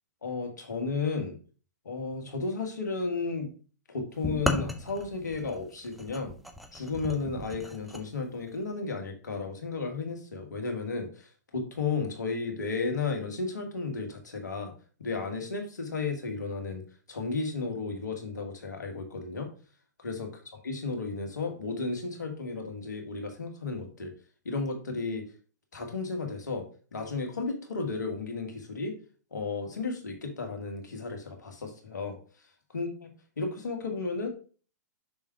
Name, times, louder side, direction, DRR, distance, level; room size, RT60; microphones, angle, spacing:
voice 1, 0.2-1.4 1.8-3.5 3.9-6.3 6.7-14.7 15.0-16.8 17.1-19.5 20.0-20.3 20.6-24.1 24.4-25.2 25.7-26.6 26.9-29.0 29.3-32.2 32.7-33.1 33.4-34.3, left 4 dB, 80° left, 4 dB, 1.7 m, -33 dB
sound 1, 4.2-8.0, left 1 dB, ahead, 0.7 m, -35 dB
6.2 x 3.6 x 4.8 m, 0.38 s
hypercardioid pair, 120°, 9 cm